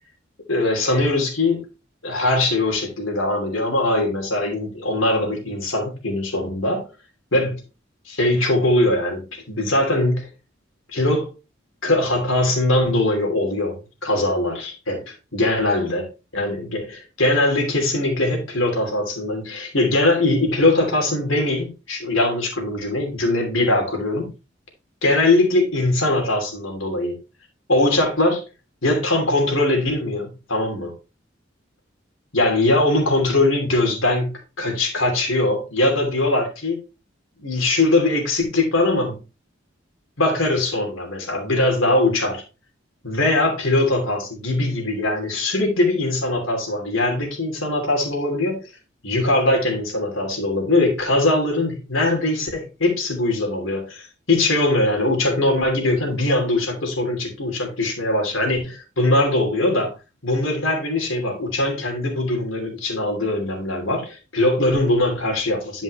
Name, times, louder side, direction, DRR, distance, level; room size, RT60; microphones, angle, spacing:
voice 1, 0.5-1.6 2.0-6.9 7.3-7.6 8.1-10.3 10.9-11.3 11.8-16.0 16.3-24.3 25.0-27.2 27.7-28.4 28.8-30.9 32.3-36.8 37.4-39.2 40.2-42.4 43.0-48.6 49.0-59.9 60.2-65.8, left 2 dB, 90° left, 3.0 m, -21 dB
10.5 x 5.2 x 3.2 m
head